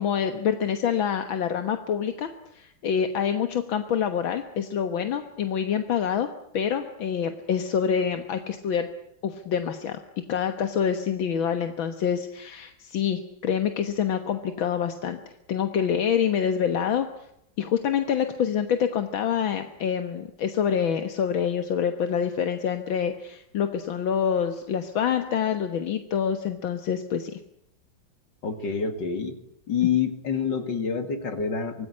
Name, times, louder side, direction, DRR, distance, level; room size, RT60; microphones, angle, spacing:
voice 1, 0.0-6.3 6.5-8.9 9.2-10.0 10.3-15.2 15.5-17.1 17.6-27.4, left 8 dB, 80° left, 8 dB, 2.1 m, -26 dB
voice 2, 28.4-29.4 29.7-31.9, left 6 dB, 60° left, 8 dB, 3.0 m, -27 dB
25.0 x 19.0 x 9.9 m, 0.79 s
omnidirectional pair, 2.2 m